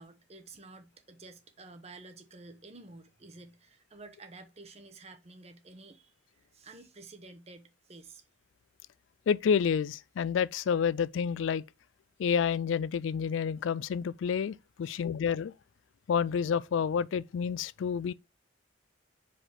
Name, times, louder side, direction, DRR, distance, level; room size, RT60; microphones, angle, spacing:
voice 1, 0.0-8.2, right 3 dB, 35° right, 0.9 m, -51 dB
voice 2, 9.3-11.6 12.2-15.5 16.1-18.1, left 7 dB, 80° left, 0.3 m, -29 dB
5.0 x 4.0 x 5.8 m
head